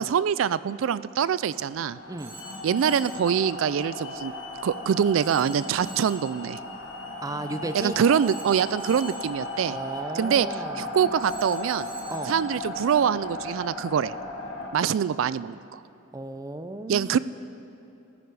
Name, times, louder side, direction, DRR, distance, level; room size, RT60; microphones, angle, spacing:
voice 1, 0.0-2.0 2.6-4.3 4.6-6.6 7.7-9.8 10.1-10.5 10.8-11.9 12.3-14.1 14.7-15.8 16.9-17.2, right 8 dB, 85° right, 17 dB, 0.3 m, -24 dB
sound 1, 1.7-14.7, left 1 dB, 70° left, 2.5 m, -36 dB
Telephone, 2.2-3.3 5.2-6.3 8.2-9.4 11.2-12.4, right 2 dB, 45° right, 2.4 m, -46 dB
Hiss / Alarm, 2.3-10.0, left 5 dB, 90° left, 1.2 m, -48 dB
voice 2, 7.2-8.0 9.6-10.9 12.1-12.3 16.1-17.2, right 2 dB, 20° right, 10 dB, 0.5 m, -34 dB
19.0 x 10.0 x 4.7 m, 2.8 s
head